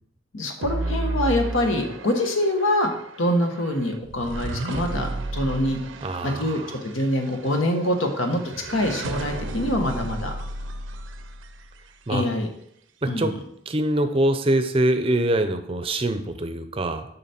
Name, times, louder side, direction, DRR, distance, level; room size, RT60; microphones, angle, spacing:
voice 1, 0.3-2.9 3.2-5.8 6.2-8.4 8.7-10.3 12.1-12.5 13.1-13.3, left 1 dB, 75° left, 3 dB, 1.2 m, -24 dB
sound 1, 0.6-11.9, right 2 dB, 70° right, 0.6 m, -33 dB
voice 2, 6.0-6.8 12.1-12.2 13.0-13.3 13.7-17.1, right 1 dB, 25° right, 9 dB, 0.6 m, -24 dB
7.0 x 5.7 x 4.3 m, 0.75 s
head